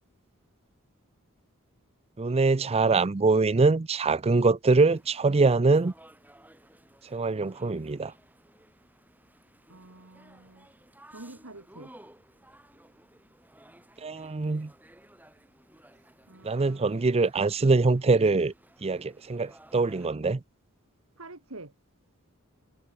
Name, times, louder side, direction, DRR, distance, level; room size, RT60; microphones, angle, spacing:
voice 1, 2.2-5.9 7.1-8.1 14.0-14.7 16.4-18.5 18.8-20.4, right 3 dB, 30° right, 0.5 m, -23 dB
sound 1, 4.9-20.1, right 1 dB, 10° right, 5.4 m, -57 dB
voice 2, 9.7-10.7 11.1-11.9 15.9-16.9 21.2-21.7, right 2 dB, 70° right, 2.9 m, -47 dB
head